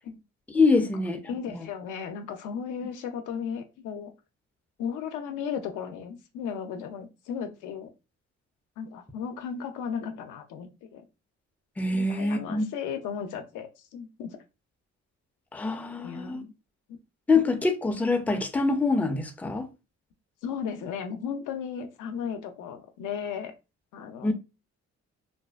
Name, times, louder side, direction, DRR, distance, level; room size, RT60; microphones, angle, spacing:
voice 1, 0.5-1.2 11.8-12.7 15.5-16.4 17.3-19.7 24.2-24.3, left 3 dB, 5° left, 0.4 m, -25 dB
voice 2, 1.3-4.1 4.8-7.9 8.8-11.0 11.9-14.4 16.0-16.5 20.4-23.5 23.9-24.3, left 7 dB, 85° left, 0.5 m, -35 dB
2.5 x 2.3 x 2.3 m
cardioid pair, 90°, 30 cm